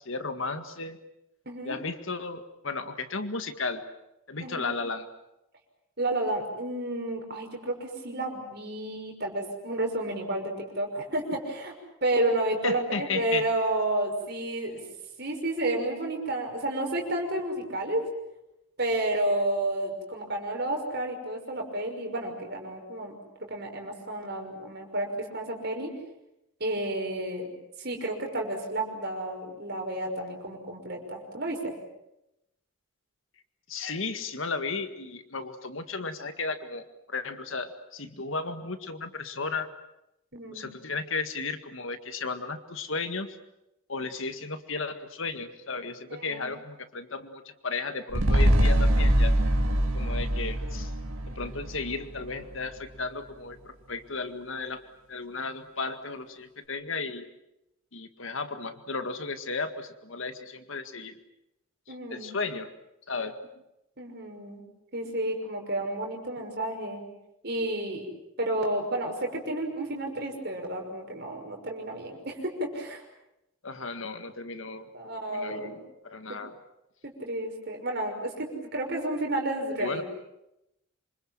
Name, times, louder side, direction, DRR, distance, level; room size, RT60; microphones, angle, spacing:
voice 1, 0.1-1.0 1.6-3.8 4.3-5.1 12.6-13.4 33.7-39.7 40.5-43.4 43.9-49.4 49.9-50.9 51.3-54.8 55.1-57.3 57.9-61.2 62.1-62.7 63.1-63.4 73.6-74.9 75.3-75.7 76.0-76.5 79.8-80.0, left 4 dB, 65° left, 9 dB, 1.9 m, -34 dB
voice 2, 1.5-1.8 4.4-4.8 6.0-11.7 12.0-14.8 15.2-18.0 18.8-23.1 23.5-25.9 26.6-27.5 27.8-31.7 40.3-40.7 46.1-46.5 61.9-62.4 64.0-64.6 64.9-67.1 67.4-68.1 68.4-73.0 74.9-75.8 77.0-80.0, right 1 dB, 50° right, 2 dB, 5.9 m, -31 dB
sound 1, 48.1-52.6 53.0-53.1, equal, 80° right, 2.5 m, -24 dB
27.0 x 25.5 x 7.7 m, 0.86 s
head